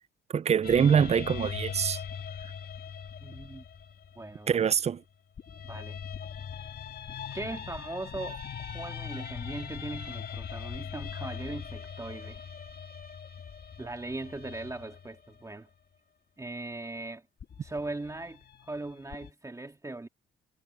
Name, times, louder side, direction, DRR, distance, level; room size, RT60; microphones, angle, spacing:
voice 1, 0.3-2.0 4.5-5.0, right 7 dB, 35° right, 0.5 m, -24 dB
sound 1, 0.6-4.8 5.4-15.4 17.4-19.3, left 7 dB, 50° left, 2.1 m, -41 dB
voice 2, 3.2-3.6 4.2-4.6 5.6-6.0 7.3-8.4 8.7-12.4 13.8-15.7 16.4-17.3 17.6-20.1, right 2 dB, 15° right, 2.2 m, -39 dB
cardioid pair, 90°, 20 cm